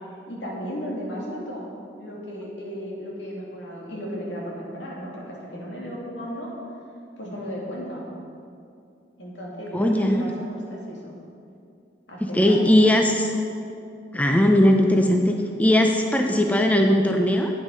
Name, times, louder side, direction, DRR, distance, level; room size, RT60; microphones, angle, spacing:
voice 1, 0.3-1.7 2.0-6.5 7.2-8.0 9.2-11.1 12.1-12.9, equal, 75° left, -4 dB, 2.7 m, -35 dB
voice 2, 9.7-10.3 12.3-13.3 14.1-17.5, left 1 dB, 10° left, 2 dB, 0.5 m, -19 dB
9.3 x 9.1 x 5.5 m, 2.5 s
head